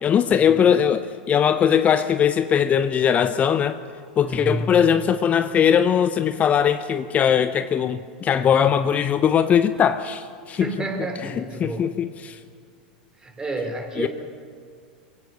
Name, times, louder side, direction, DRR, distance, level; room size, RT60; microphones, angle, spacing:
voice 1, 0.0-3.8 4.2-10.7 11.4-12.4 14.0-14.1, left 8 dB, 30° left, 11 dB, 0.8 m, -20 dB
voice 2, 4.2-4.7 10.5-12.0 13.2-14.1, right 2 dB, 15° right, 5 dB, 3.7 m, -30 dB
25.0 x 16.5 x 7.0 m, 2.1 s
hypercardioid pair, 90°, 5 cm